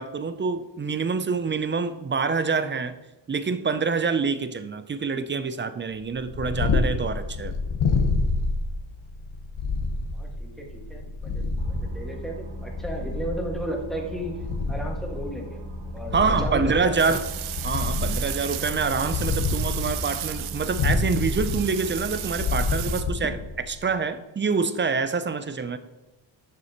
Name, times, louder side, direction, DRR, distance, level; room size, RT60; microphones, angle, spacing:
voice 1, 0.0-2.9 3.3-7.6 16.1-17.2 17.6-23.4 23.7-25.8, right 5 dB, 25° right, 12 dB, 0.4 m, -26 dB
Purr, 6.1-23.8, left 3 dB, 80° left, 1.1 m, -28 dB
voice 2, 10.1-14.4 14.7-15.6 15.9-17.2, right 1 dB, ahead, -1 dB, 1.6 m, -34 dB
Boat Water vehicle, 11.6-23.1, equal, 60° right, 1.2 m, -40 dB
sound 1, 17.0-23.0, right 13 dB, 85° right, 0.6 m, -35 dB
7.5 x 6.4 x 2.9 m, 1.0 s
cardioid pair, 90°, 47 cm